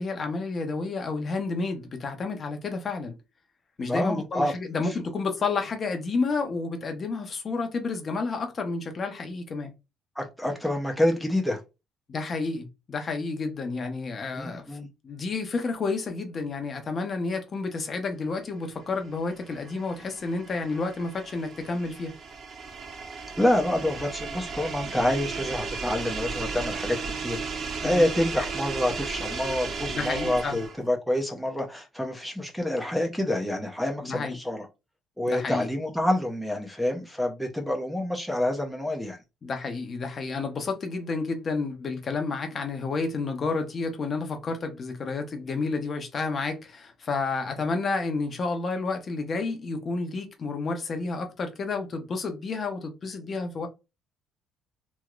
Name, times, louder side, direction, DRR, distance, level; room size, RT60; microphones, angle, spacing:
voice 1, 0.0-3.1 3.8-9.7 12.1-14.7 15.0-22.1 27.8-28.0 29.9-30.6 34.0-34.4 35.3-35.7 39.4-53.7, left 4 dB, 35° left, 0.7 m, -30 dB
voice 2, 3.8-4.5 4.9-5.0 10.2-11.6 14.3-14.9 23.4-34.7 35.2-39.2, left 1 dB, ahead, 0.6 m, -27 dB
sound 1, 19.0-30.9, right 5 dB, 45° right, 0.6 m, -35 dB
3.0 x 2.7 x 2.4 m
cardioid pair, 135°, 0 cm